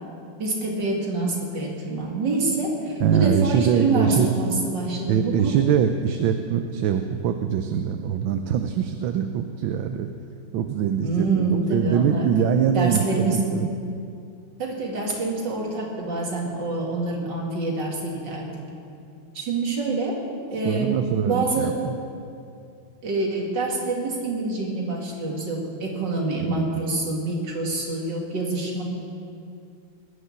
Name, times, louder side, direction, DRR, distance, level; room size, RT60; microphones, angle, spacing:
voice 1, 0.4-5.6 11.0-12.5 12.7-13.4 14.6-18.6 19.3-20.2 20.5-20.9 21.2-21.7 23.0-28.8, right 3 dB, 60° right, -1 dB, 3.0 m, -26 dB
voice 2, 3.0-4.3 5.1-10.1 10.5-13.7 20.6-21.9 26.4-26.7, right 8 dB, 80° right, 7 dB, 1.4 m, -23 dB
19.5 x 6.7 x 10.0 m, 2.5 s
omnidirectional pair, 2.2 m